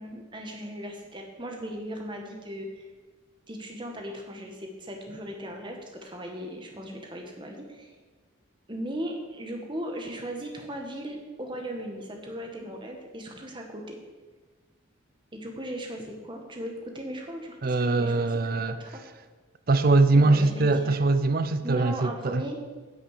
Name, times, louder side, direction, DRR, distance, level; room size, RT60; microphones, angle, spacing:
voice 1, 0.0-2.9 3.5-7.9 8.7-14.0 15.3-19.0 20.1-21.0 21.6-22.6, equal, 25° right, 1.5 m, -37 dB
voice 2, 17.6-18.8 19.7-22.4, right 3 dB, 45° right, 0.5 m, -22 dB
10.5 x 6.4 x 8.3 m
head